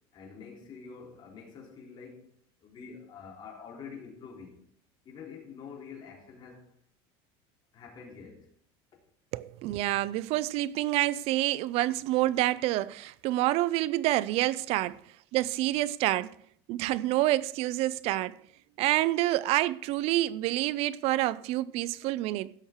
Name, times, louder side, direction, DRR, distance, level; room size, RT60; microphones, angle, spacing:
voice 1, 0.1-2.3 2.6-4.6 5.1-6.6 7.7-8.5 14.7-14.9, left 5 dB, 35° left, 3.8 m, -46 dB
voice 2, 9.3-15.0 15.3-16.3 16.7-18.4 18.8-22.5, right 16 dB, 55° right, 0.5 m, -28 dB
16.5 x 6.5 x 4.6 m
supercardioid pair, 135°, 13 cm